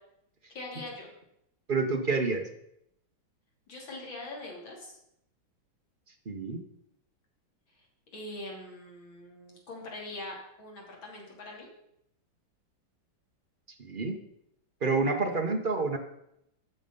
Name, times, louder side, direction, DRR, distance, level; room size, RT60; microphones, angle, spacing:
voice 1, 0.5-1.1 3.7-5.0 7.8-7.9 8.1-11.7, left 2 dB, 75° left, -2 dB, 3.6 m, -42 dB
voice 2, 1.7-2.5 6.3-6.6 13.8-14.1 14.8-16.0, right 3 dB, 35° right, 4 dB, 0.9 m, -28 dB
12.0 x 7.1 x 5.5 m, 0.78 s
omnidirectional pair, 2.2 m